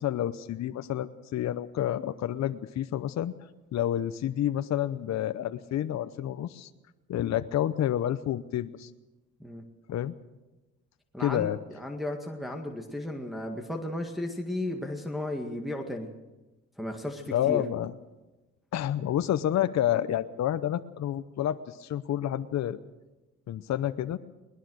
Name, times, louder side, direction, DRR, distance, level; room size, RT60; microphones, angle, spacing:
voice 1, 0.0-3.3 3.7-6.7 7.1-8.9 9.9-10.1 11.2-11.6 17.3-17.9 18.7-22.8 23.5-24.2, left 11 dB, 65° left, 11 dB, 0.8 m, -29 dB
voice 2, 11.1-16.1 16.8-17.6, left 1 dB, ahead, 1 dB, 2.0 m, -34 dB
21.0 x 20.0 x 6.4 m, 1.1 s
cardioid pair, 90°, 30 cm